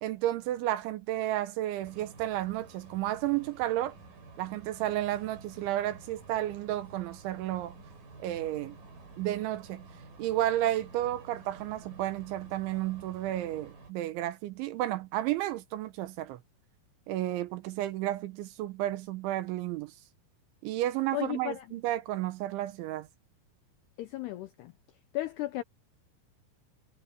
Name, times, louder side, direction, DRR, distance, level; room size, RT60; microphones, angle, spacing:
voice 1, 0.0-3.9 4.4-7.8 8.2-8.8 9.2-9.9 10.2-16.4 17.1-19.9 20.6-23.1, right 14 dB, 75° right, 3.1 m, -32 dB
sound 1, 1.8-13.9, right 3 dB, 45° right, 6.7 m, -51 dB
voice 2, 21.1-21.8 24.0-24.7 25.1-25.6, left 16 dB, 85° left, 2.3 m, -35 dB
omnidirectional pair, 5.8 m